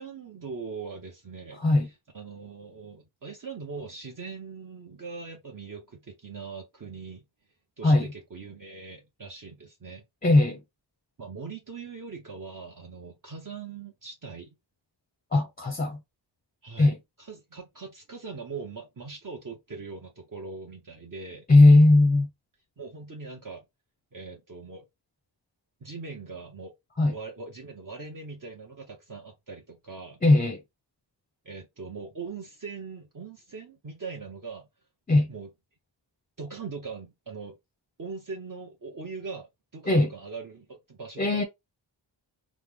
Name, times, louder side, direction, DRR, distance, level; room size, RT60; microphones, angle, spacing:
voice 1, 0.0-7.2 7.8-10.0 11.2-14.5 16.6-21.4 22.8-23.6 24.1-24.8 25.8-26.7 27.1-30.2 31.4-34.7 35.3-35.5 36.4-37.6 38.0-41.4, right 4 dB, 45° right, 0.8 m, -41 dB
voice 2, 1.6-1.9 7.8-8.1 10.2-10.6 15.3-16.0 16.8-17.0 21.5-22.3 27.0-27.1 30.2-30.6 35.1-35.3 39.9-40.1 41.2-41.4, left 2 dB, 20° left, 0.5 m, -19 dB
3.1 x 2.0 x 3.4 m
wide cardioid pair, 75°, 46 cm